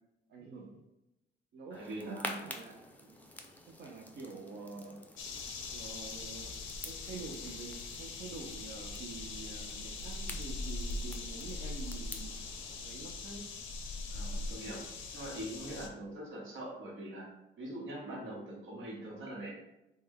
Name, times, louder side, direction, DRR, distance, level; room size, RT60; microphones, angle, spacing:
voice 1, 0.3-0.8 1.5-3.2 3.7-5.0 5.7-6.5 6.8-12.4 12.8-13.5, right 4 dB, 55° right, -1 dB, 0.5 m, -47 dB
sound 1, 1.7-12.8, left 1 dB, 10° left, 0.4 m, -49 dB
voice 2, 1.7-2.4 14.1-14.8 15.1-17.3 17.6-19.5, right 1 dB, 80° right, -3 dB, 1.1 m, -43 dB
sound 2, 5.2-15.9, left 3 dB, 80° left, 0.6 m, -41 dB
3.2 x 2.1 x 3.5 m, 0.93 s
cardioid pair, 90°, 20 cm